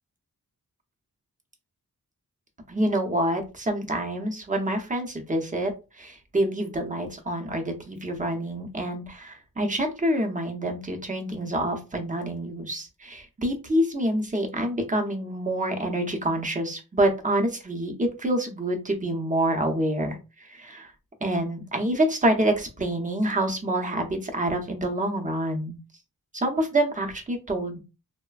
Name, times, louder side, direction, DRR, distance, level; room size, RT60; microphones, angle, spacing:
voice 1, 2.7-20.2 20.5-20.9 21.2-25.8 26.3-27.8, right 1 dB, 20° right, 3 dB, 0.7 m, -27 dB
3.1 x 2.1 x 2.3 m, 0.29 s
wide cardioid pair, 80°, 35 cm